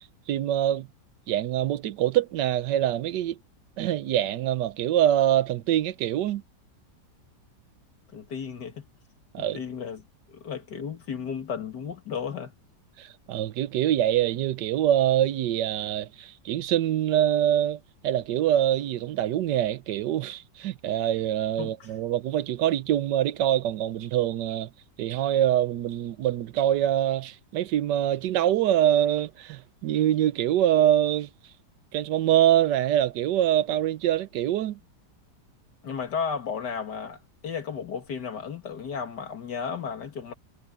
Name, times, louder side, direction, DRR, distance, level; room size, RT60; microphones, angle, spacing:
voice 1, 0.3-0.9 1.3-3.4 3.8-6.4 9.3-9.6 13.0-24.7 25.0-31.3 31.9-34.8, right 11 dB, 85° right, 1.3 m, -24 dB
voice 2, 8.1-8.9 9.4-10.0 10.3-12.5 21.6-21.9 35.8-40.3, left 6 dB, 75° left, 2.5 m, -34 dB
omnidirectional pair, 1.8 m